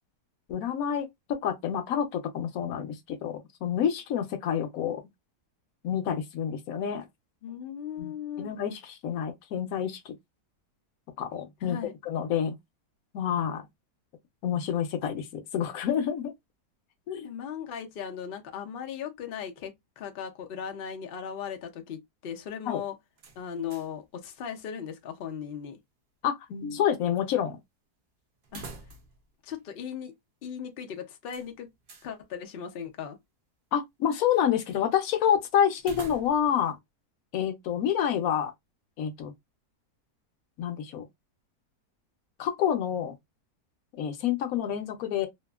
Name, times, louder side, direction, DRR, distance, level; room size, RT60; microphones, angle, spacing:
voice 1, 0.5-5.0 5.8-7.0 8.0-8.1 8.4-10.1 11.2-11.8 12.0-12.5 13.1-13.6 14.4-16.3 17.1-17.3 22.7-22.8 26.2-27.6 33.7-36.8 37.3-38.5 39.0-39.3 40.6-41.0 42.4-43.1 43.9-45.3, left 9 dB, 70° left, 0.9 m, -28 dB
voice 2, 7.4-8.5 11.6-11.9 17.2-23.0 23.4-25.8 28.5-28.7 29.4-30.1 30.4-31.7 32.0-33.2, left 8 dB, 90° left, 0.5 m, -37 dB
sound 1, 23.2-24.1 24.4-24.5 28.4-29.3 29.6-29.7 31.3-32.1 35.8-36.6, right 3 dB, 80° right, 0.4 m, -46 dB
2.8 x 2.4 x 2.3 m
omnidirectional pair, 1.7 m